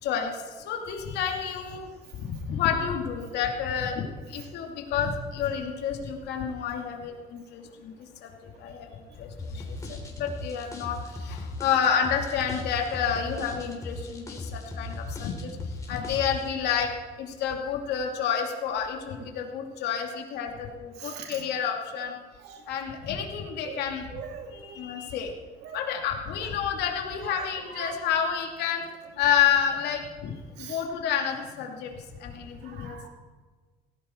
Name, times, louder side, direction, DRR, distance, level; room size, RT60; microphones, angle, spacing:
voice 1, 0.0-1.9 2.1-7.9 8.2-8.3 8.6-8.9 9.2-16.9 17.2-22.2 22.7-24.0 24.6-25.3 25.7-28.8 29.2-33.0, left 8 dB, 80° left, 2 dB, 2.6 m, -29 dB
sound 1, 9.4-16.5, left 2 dB, 20° left, 3.8 m, -38 dB
voice 2, 21.0-21.4 22.4-22.6 23.6-23.8 24.1-24.8 25.6-25.8 26.4-26.5 27.2-27.9 30.6-30.8 32.6-33.1, right 7 dB, 80° right, 4 dB, 2.4 m, -41 dB
17.5 x 15.5 x 4.5 m, 1.4 s
cardioid pair, 110°, 17 cm